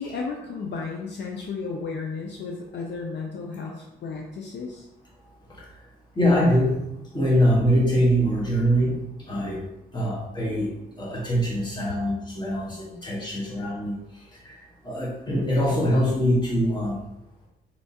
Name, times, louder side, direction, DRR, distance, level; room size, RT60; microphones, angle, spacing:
voice 1, 0.0-4.9, left 4 dB, 60° left, 0 dB, 0.6 m, -33 dB
voice 2, 6.1-6.8 7.1-9.6 9.9-10.7 11.0-14.0 14.4-14.6 14.8-17.0, equal, 20° left, -4 dB, 1.4 m, -23 dB
4.3 x 3.2 x 2.8 m, 0.89 s
cardioid pair, 90°, 20 cm